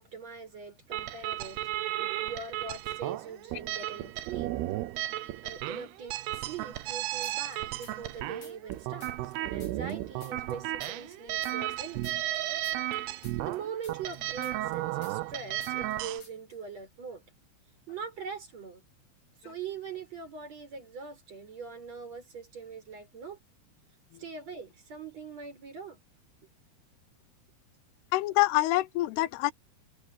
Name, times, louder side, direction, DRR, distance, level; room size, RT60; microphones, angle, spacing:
voice 1, 0.0-1.6 2.0-4.6 5.4-12.1 13.4-17.2 17.9-18.8 19.4-23.4 24.2-26.0, right 6 dB, 40° right, 6.7 m, -42 dB
sound 1, 0.9-16.2, right 15 dB, 85° right, 2.9 m, -34 dB
sound 2, 7.2-8.2 8.4-11.2 11.4-15.4 15.6-16.0 16.2-16.6, left 4 dB, 45° left, 6.4 m, -53 dB
voice 2, 28.1-29.5, left 18 dB, 85° left, 2.7 m, -26 dB
omnidirectional pair, 4.6 m